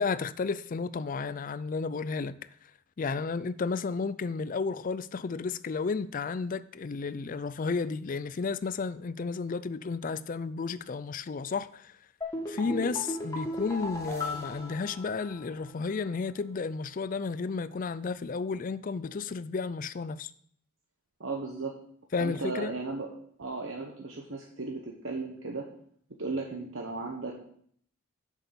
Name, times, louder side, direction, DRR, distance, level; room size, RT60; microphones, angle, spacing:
voice 1, 0.0-2.4 3.0-11.9 12.5-20.3 22.1-22.8, left 4 dB, 40° left, 0.4 m, -32 dB
sound 1, 12.2-15.6 15.9-16.0, left 1 dB, 15° left, 1.9 m, -37 dB
voice 2, 12.6-13.0 21.2-21.7 22.2-23.1 23.4-25.7 26.2-27.3, right 3 dB, 60° right, 1.1 m, -36 dB
7.8 x 6.4 x 6.9 m
head